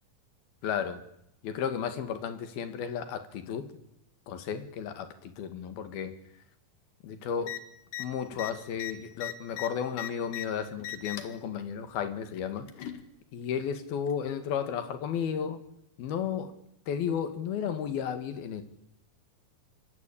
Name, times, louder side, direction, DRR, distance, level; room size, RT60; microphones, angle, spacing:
voice 1, 0.6-1.0 1.4-3.7 4.3-6.2 7.0-7.6 8.0-12.7 13.3-15.6 16.0-16.5 16.9-18.6, left 8 dB, 85° left, 10 dB, 4.0 m, -33 dB
sound 1, 7.4-7.6 7.9-8.1 8.3-10.5 10.8-11.4 12.3-13.0 14.1-14.2, left 12 dB, 65° left, 3.4 m, -38 dB
25.5 x 22.5 x 8.7 m, 0.77 s
omnidirectional pair, 4.2 m